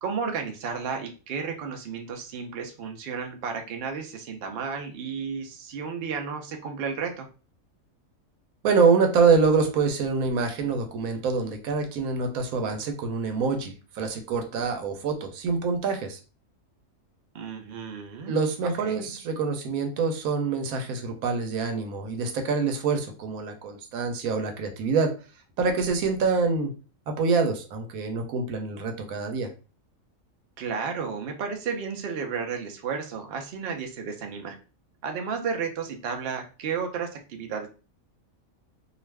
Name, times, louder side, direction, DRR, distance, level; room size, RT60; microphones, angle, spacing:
voice 1, 0.0-7.3 17.3-18.3 18.8-19.1 30.6-34.6 35.0-37.7, right 6 dB, 60° right, 4 dB, 0.7 m, -33 dB
voice 2, 8.6-16.2 18.3-25.1 25.6-26.7 27.1-29.5, right 4 dB, 90° right, 5 dB, 1.1 m, -25 dB
2.5 x 2.4 x 3.2 m, 0.34 s
omnidirectional pair, 1.4 m